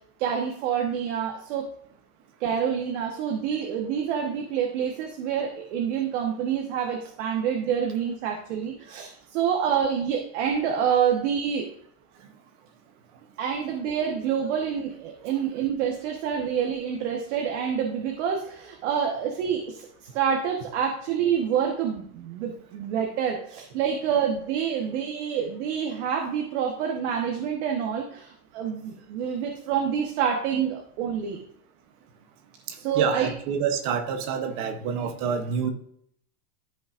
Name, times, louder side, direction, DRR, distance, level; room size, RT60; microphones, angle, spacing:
voice 1, 0.2-1.6 2.4-11.7 13.4-31.4 32.8-33.3, right 8 dB, 45° right, 1 dB, 1.3 m, -27 dB
voice 2, 32.7-35.7, right 7 dB, 30° right, 6 dB, 0.8 m, -28 dB
13.5 x 5.6 x 2.5 m, 0.66 s
supercardioid pair, 175°, 49 cm